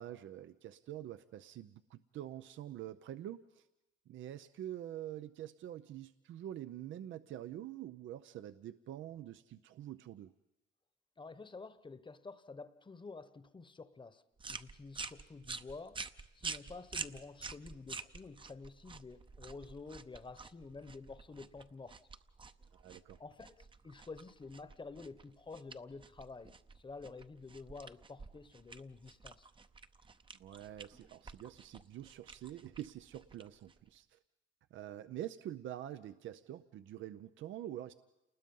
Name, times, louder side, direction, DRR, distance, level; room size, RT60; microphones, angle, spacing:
voice 1, 0.0-3.7 4.1-10.3 22.8-23.2 30.4-34.2 34.7-37.9, right 12 dB, 75° right, 0.7 m, -46 dB
voice 2, 11.2-14.2 14.5-16.0 16.3-22.0 23.2-29.5, left 4 dB, 25° left, 1.1 m, -50 dB
sound 1, 14.4-34.0, right 4 dB, 25° right, 0.8 m, -49 dB
28.5 x 20.0 x 5.5 m
cardioid pair, 90°, 20 cm